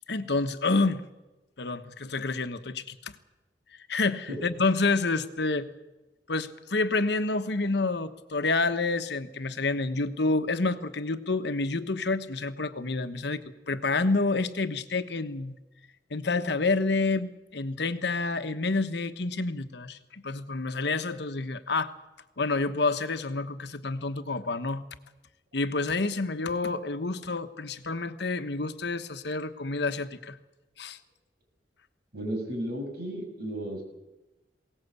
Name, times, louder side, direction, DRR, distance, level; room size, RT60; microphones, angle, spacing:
voice 1, 0.1-1.0 1.6-3.1 3.9-5.7 6.3-13.4 13.7-15.6 16.1-21.9 22.4-24.8 25.5-30.4 30.8-31.0, left 3 dB, 70° left, 10 dB, 1.1 m, -28 dB
voice 2, 32.1-33.8, right 1 dB, 65° right, 3 dB, 6.5 m, -34 dB
21.0 x 18.0 x 8.3 m, 1.1 s
head